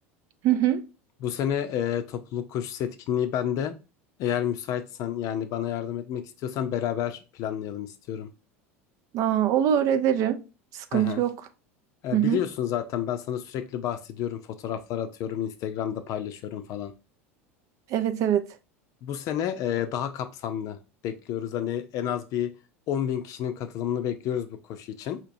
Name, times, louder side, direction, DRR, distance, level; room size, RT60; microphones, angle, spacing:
voice 1, 0.4-0.8 9.1-10.4 10.7-11.3 12.1-12.4 17.9-18.5, right 10 dB, 50° right, 0.4 m, -23 dB
voice 2, 1.2-3.7 4.2-8.3 10.9-11.2 12.0-16.9 19.0-20.8 21.0-22.5 22.9-25.2, left 10 dB, 50° left, 0.5 m, -30 dB
4.3 x 2.9 x 2.6 m
hypercardioid pair, 80°, 7 cm